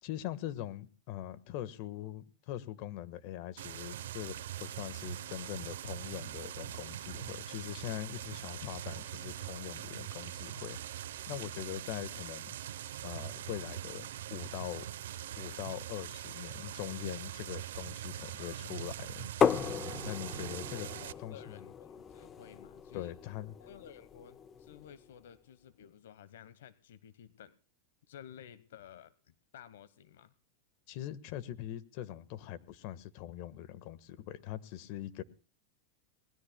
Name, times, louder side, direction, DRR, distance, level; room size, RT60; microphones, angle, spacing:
voice 1, 0.0-12.5 13.0-14.9 15.4-19.3 20.0-20.9 21.2-21.6 22.9-23.5 30.9-35.2, left 12 dB, 55° left, 1.5 m, -42 dB
sound 1, 3.6-21.1, right 12 dB, 85° right, 0.8 m, -42 dB
sound 2, 19.4-25.1, left 7 dB, 25° left, 0.7 m, -35 dB
voice 2, 20.7-23.1 23.6-27.5 28.1-30.3, left 9 dB, 85° left, 1.1 m, -53 dB
26.0 x 20.0 x 2.3 m
supercardioid pair, 130°, 0 cm